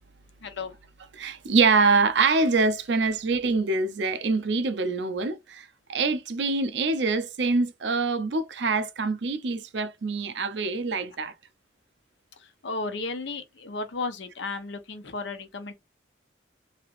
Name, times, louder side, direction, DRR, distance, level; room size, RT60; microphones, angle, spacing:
voice 1, 0.4-0.8 12.4-15.7, left 3 dB, 75° left, 0.8 m, -34 dB
voice 2, 1.2-11.3, right 4 dB, 70° right, 0.5 m, -25 dB
3.2 x 2.9 x 2.4 m
head